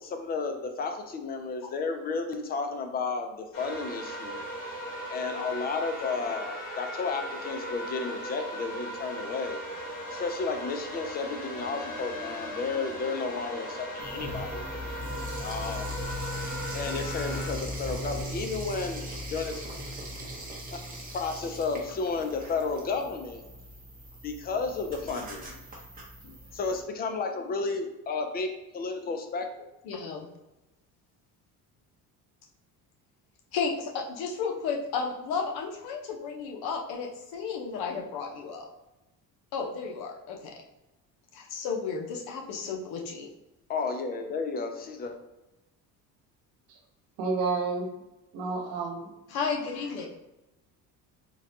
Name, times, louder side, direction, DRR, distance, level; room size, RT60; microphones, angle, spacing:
voice 1, 0.0-4.5 5.1-9.6 10.1-14.6 15.4-15.9 16.7-19.0 19.3-19.6 21.1-23.4 24.2-25.6 26.2-29.7 43.7-45.2, left 4 dB, 25° left, 5 dB, 0.3 m, -32 dB
sound 1, 3.5-17.5, equal, 55° left, 1.3 m, -38 dB
sound 2, 14.0-26.8, left 1 dB, 25° right, 0.7 m, -39 dB
voice 2, 29.8-30.2 33.5-38.7 39.5-40.5 41.3-43.3 49.3-50.1, left 5 dB, 75° left, 1 dB, 0.8 m, -33 dB
voice 3, 47.2-47.9 48.3-49.1, right 4 dB, 90° right, 1 dB, 1.0 m, -30 dB
3.9 x 2.2 x 2.6 m, 0.98 s
cardioid pair, 140°, 38 cm